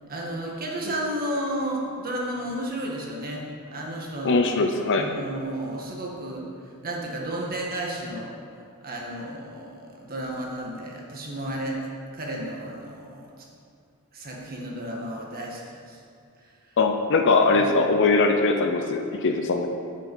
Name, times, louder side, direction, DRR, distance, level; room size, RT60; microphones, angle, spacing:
voice 1, 0.1-3.4 3.7-4.4 4.9-6.4 6.8-8.3 8.8-11.8 12.1-13.3 14.1-16.0 17.5-17.7, right 1 dB, 40° right, -2 dB, 1.7 m, -32 dB
voice 2, 4.2-5.1 16.8-19.7, left 3 dB, 55° left, 5 dB, 0.6 m, -21 dB
8.7 x 7.7 x 5.5 m, 2.4 s
head